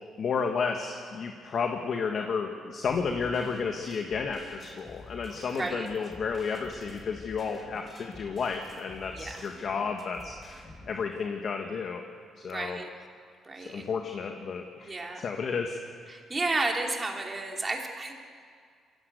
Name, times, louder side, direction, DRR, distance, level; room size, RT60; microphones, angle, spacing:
voice 1, 0.2-10.3 10.9-12.0 12.4-12.8 13.6-15.8, left 5 dB, 55° left, 4 dB, 1.6 m, -32 dB
sound 1, 2.8-10.9, left 2 dB, 35° left, 4.5 m, -49 dB
voice 2, 12.4-12.9 13.4-13.9 14.8-15.2 16.1-18.1, right 2 dB, 25° right, 1 dB, 3.1 m, -32 dB
23.0 x 16.5 x 8.3 m, 2.1 s
cardioid pair, 90°, 0 cm